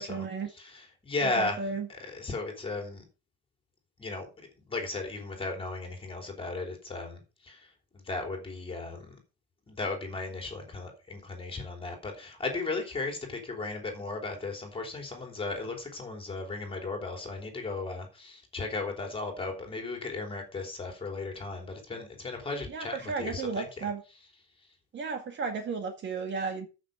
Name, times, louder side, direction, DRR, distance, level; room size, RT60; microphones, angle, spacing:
voice 1, 0.0-0.5 1.2-1.9 22.7-24.0 24.9-26.7, right 4 dB, 35° right, 2.0 m, -34 dB
voice 2, 0.6-1.6 2.0-3.0 4.0-4.3 4.7-9.1 9.7-23.9, left 3 dB, 15° left, 3.3 m, -36 dB
13.5 x 6.2 x 5.0 m
cardioid pair, 170°, 32 cm